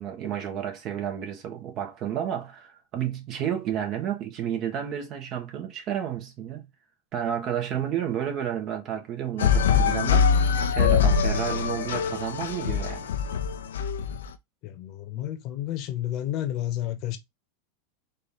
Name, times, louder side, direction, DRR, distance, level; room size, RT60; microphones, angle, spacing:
voice 1, 0.0-6.7 7.1-10.3 10.7-13.1, right 9 dB, 45° right, 1.5 m, -31 dB
sound 1, 9.4-14.3, left 6 dB, 85° left, 0.6 m, -23 dB
voice 2, 14.6-17.2, left 13 dB, 50° left, 1.0 m, -31 dB
4.2 x 2.8 x 3.7 m
hypercardioid pair, 105°, 0 cm